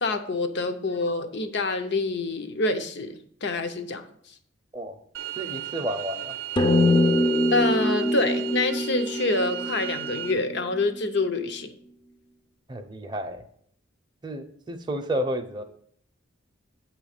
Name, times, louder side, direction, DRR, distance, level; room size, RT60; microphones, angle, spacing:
voice 1, 0.0-4.0 7.5-11.7, left 2 dB, 60° left, 8 dB, 0.7 m, -26 dB
sound 1, 5.1-10.3, right 14 dB, 80° right, 0.4 m, -35 dB
voice 2, 5.4-6.3 12.7-13.4 14.2-15.6, equal, 20° right, 4 dB, 0.6 m, -31 dB
sound 2, 6.6-11.2, left 1 dB, 25° left, 0.5 m, -24 dB
9.0 x 3.1 x 6.5 m, 0.64 s
head